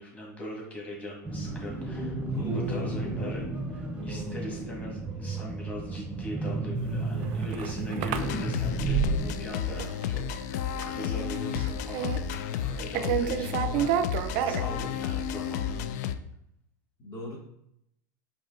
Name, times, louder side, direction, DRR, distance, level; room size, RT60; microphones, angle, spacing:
voice 1, 0.0-3.4 3.7-12.1 12.5-15.8, left 1 dB, 15° left, -3 dB, 1.8 m, -41 dB
sound 1, 1.2-9.3, right 2 dB, 10° right, 0.8 m, -33 dB
voice 2, 2.3-3.0 17.0-17.4, equal, 30° left, -4 dB, 1.1 m, -37 dB
sound 2, 7.0-9.5 9.8-10.3 10.7-11.0 11.3-12.7 12.9-15.2, right 9 dB, 55° right, 0.4 m, -30 dB
sound 3, 8.1-16.2, left 8 dB, 65° left, 0.4 m, -32 dB
5.0 x 2.8 x 3.7 m, 0.76 s
hypercardioid pair, 105°, 10 cm